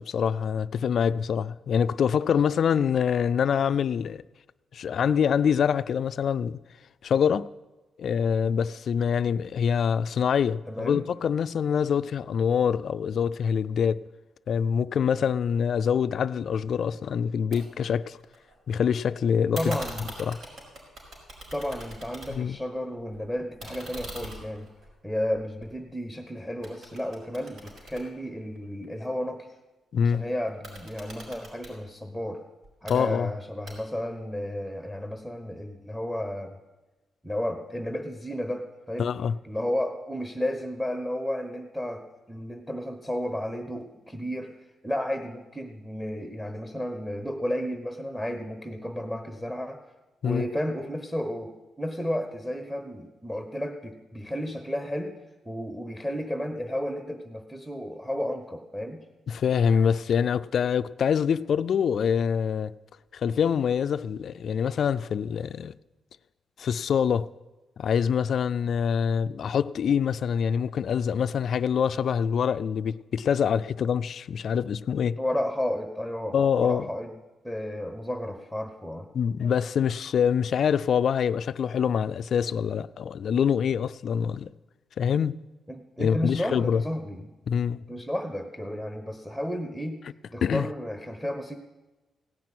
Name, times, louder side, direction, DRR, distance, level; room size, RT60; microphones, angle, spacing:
voice 1, 0.0-4.2 4.7-6.6 7.0-7.5 8.0-14.0 14.5-18.2 18.7-19.6 20.2-20.4 22.3-22.6 29.9-30.2 32.9-33.3 39.0-39.3 50.2-50.4 59.3-62.7 63.1-65.7 66.6-67.3 67.8-75.2 76.3-76.9 79.1-84.5 85.0-85.4 86.0-86.8 87.5-87.8 90.4-90.7, left 7 dB, 65° left, 0.4 m, -25 dB
voice 2, 10.7-11.0 19.5-20.1 21.5-24.7 25.0-29.5 30.0-32.4 32.8-36.6 37.2-39.1 39.4-44.5 44.8-49.8 50.2-55.2 55.4-59.0 75.2-77.1 77.4-79.1 85.7-87.3 87.9-90.0 90.3-91.6, equal, 5° right, 1.1 m, -32 dB
sound 1, 17.5-17.6 17.9-18.7 19.5-22.6 23.0-26.2 26.6-28.9 30.5-31.7 32.6-33.0 33.7-34.1, right 1 dB, 70° right, 5.2 m, -43 dB
17.0 x 6.0 x 9.4 m
cardioid pair, 95°, 0 cm